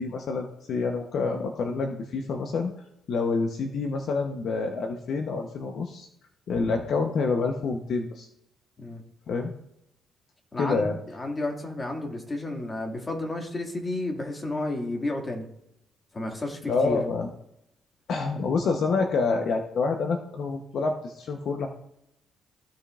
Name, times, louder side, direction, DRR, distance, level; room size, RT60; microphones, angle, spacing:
voice 1, 0.0-2.7 3.1-6.1 6.5-8.3 9.3-9.5 10.6-11.0 16.7-17.3 18.1-21.7, left 4 dB, 65° left, 4 dB, 1.0 m, -27 dB
voice 2, 10.5-15.5 16.1-17.0, left 2 dB, 25° left, 1 dB, 2.3 m, -32 dB
15.5 x 5.1 x 2.5 m, 0.80 s
cardioid pair, 90°, 0 cm